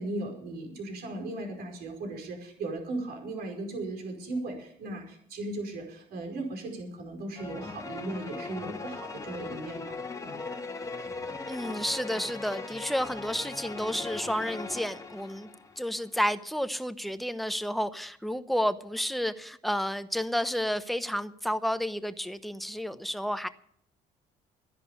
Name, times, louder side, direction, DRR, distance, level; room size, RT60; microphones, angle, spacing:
voice 1, 0.0-10.0 10.2-10.4, right 2 dB, 70° right, 3 dB, 5.0 m, -37 dB
sound 1, 7.3-15.9, left 3 dB, 20° left, 1.4 m, -39 dB
voice 2, 11.5-15.5 15.8-23.5, equal, ahead, 11 dB, 0.8 m, -31 dB
13.5 x 10.5 x 7.2 m, 0.66 s
cardioid pair, 110°, 17 cm